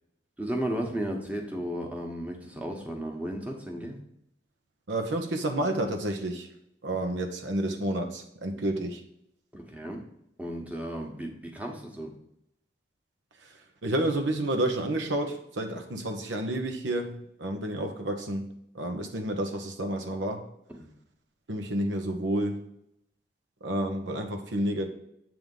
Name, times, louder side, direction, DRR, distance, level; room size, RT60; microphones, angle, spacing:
voice 1, 0.4-4.0 9.5-10.0 10.4-12.1 20.7-20.9, equal, 10° right, 1 dB, 1.0 m, -34 dB
voice 2, 4.9-6.5 6.8-9.0 13.4-13.5 13.8-18.5 18.7-20.4 21.5-22.6 23.6-24.9, right 1 dB, 90° right, 4 dB, 0.9 m, -30 dB
7.7 x 3.6 x 5.3 m, 0.78 s
head